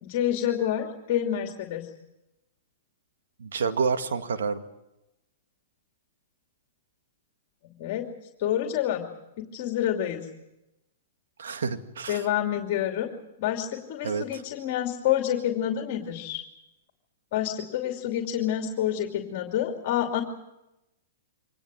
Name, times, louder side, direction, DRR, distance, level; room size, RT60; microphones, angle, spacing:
voice 1, 0.0-1.9 7.8-8.1 8.4-9.1 9.4-10.3 12.1-13.1 13.4-16.4 17.3-20.2, left 11 dB, 50° left, 3 dB, 2.7 m, -28 dB
voice 2, 3.4-4.6 11.4-12.3 14.0-14.4, right 5 dB, 80° right, 8 dB, 2.0 m, -29 dB
24.5 x 19.5 x 7.7 m, 0.93 s
hypercardioid pair, 130°, 0 cm